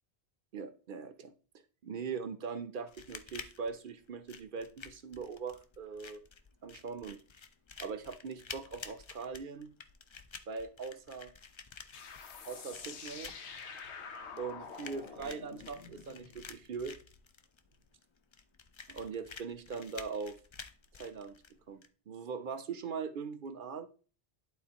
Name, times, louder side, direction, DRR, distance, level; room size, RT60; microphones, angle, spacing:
voice 1, 0.5-1.3 1.8-6.2 6.6-7.2 7.8-9.7 10.5-11.3 12.5-13.3 14.4-17.0 18.9-20.4 20.9-21.4 21.7-23.9, right 5 dB, 55° right, 9 dB, 0.8 m, -41 dB
sound 1, 2.9-21.9, left 5 dB, 45° left, 0.4 m, -51 dB
sound 2, 11.9-17.2, left 5 dB, 90° left, 1.1 m, -48 dB
11.5 x 3.9 x 2.9 m, 0.39 s
omnidirectional pair, 1.1 m